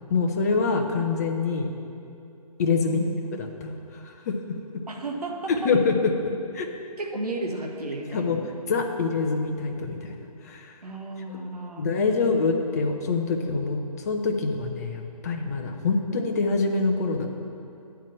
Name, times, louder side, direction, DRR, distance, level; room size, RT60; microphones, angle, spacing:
voice 1, 0.1-1.7 2.6-3.0 3.4-4.4 4.7-4.8 5.5-6.7 8.1-8.4 8.7-10.1 10.4-10.8 11.3-11.4 11.8-13.8 14.0-17.3, left 4 dB, 25° left, 4 dB, 0.6 m, -25 dB
voice 2, 4.9-5.7 7.0-8.5 10.8-12.3, right 2 dB, 70° right, 2 dB, 1.1 m, -34 dB
8.9 x 4.6 x 7.5 m, 2.6 s
figure-of-eight pair, 145°, 20 cm